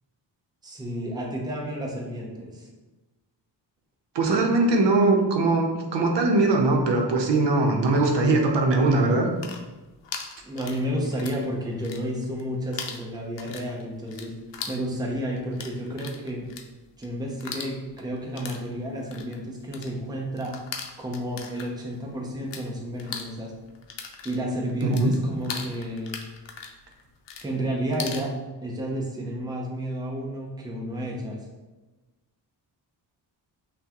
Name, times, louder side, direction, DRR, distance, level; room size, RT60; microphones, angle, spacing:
voice 1, 0.6-2.7 10.4-14.4 14.7-16.5 17.0-20.5 21.0-23.5 24.2-26.2 27.4-28.3 28.6-31.4, equal, 10° right, -2 dB, 0.6 m, -31 dB
voice 2, 4.1-9.3 24.8-25.1, right 2 dB, 75° right, 1 dB, 0.7 m, -21 dB
sound 1, 9.2-11.5 11.7-12.4 12.7-22.6 22.9-28.3, left 6 dB, 85° left, 0.6 m, -39 dB
5.6 x 2.2 x 2.9 m, 1.1 s
wide cardioid pair, 125°, 43 cm